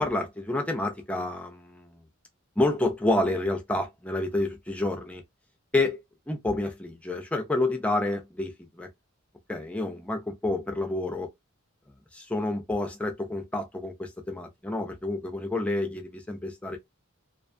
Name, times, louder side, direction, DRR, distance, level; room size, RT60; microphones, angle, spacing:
voice 1, 0.0-2.0 2.6-5.2 5.7-8.9 9.5-11.3 12.1-16.8, left 2 dB, 5° left, 0.4 m, -29 dB
2.4 x 2.3 x 2.5 m
head